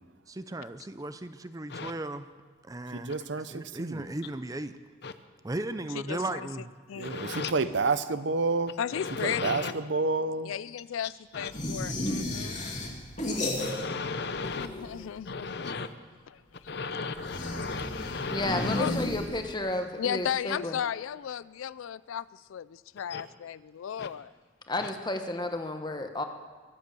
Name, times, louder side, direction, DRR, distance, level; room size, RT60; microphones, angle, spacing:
voice 1, 0.3-2.2 2.6-3.2 3.5-4.7 5.4-6.7, right 2 dB, 15° right, 11 dB, 0.5 m, -36 dB
voice 2, 2.9-4.0 7.0-8.7 9.2-10.5, right 3 dB, 65° right, 13 dB, 0.7 m, -29 dB
voice 3, 6.1-6.4 6.9-7.1 8.8-9.8 10.4-12.6 14.5-15.7 18.8-19.1 20.0-24.3, left 9 dB, 85° left, 19 dB, 0.4 m, -35 dB
voice 4, 7.0-7.5 8.9-9.7 11.3-11.5 13.6-14.7 15.2-15.9 16.7-18.9 23.1-23.2 24.0-24.1 24.8-24.9, left 4 dB, 55° left, 11 dB, 0.8 m, -35 dB
sound 1, 11.5-14.1 14.4-15.2 17.2-19.7, left 1 dB, 35° left, 2.4 m, -33 dB
voice 5, 18.3-20.8 24.7-26.2, left 2 dB, 20° left, 6 dB, 1.1 m, -32 dB
23.5 x 8.2 x 6.9 m, 1.5 s
head